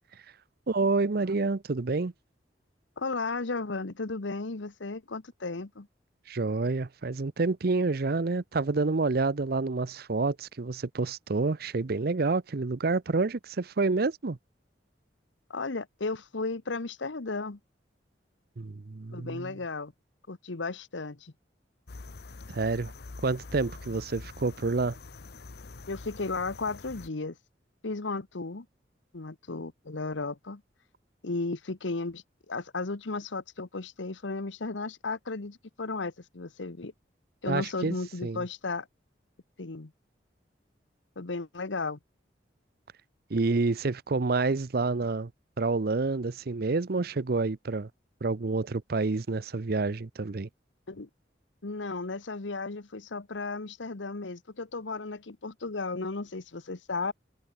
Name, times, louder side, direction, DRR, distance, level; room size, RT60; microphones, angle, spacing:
voice 1, 0.7-2.1 6.3-14.4 18.6-19.6 22.5-22.9 23.2-25.0 37.5-37.9 38.2-38.4 43.3-45.3 45.6-47.9 48.2-50.5, right 3 dB, 55° right, 0.6 m, -28 dB
voice 2, 3.0-5.9 15.5-17.6 19.1-19.9 20.3-21.3 25.9-27.4 27.8-28.7 29.1-30.6 31.2-36.9 37.4-38.9 39.6-39.9 41.2-42.0 50.9-51.1 51.6-57.1, left 3 dB, 85° left, 1.1 m, -34 dB
sound 1, 21.9-27.1, left 3 dB, 60° left, 0.8 m, -45 dB
head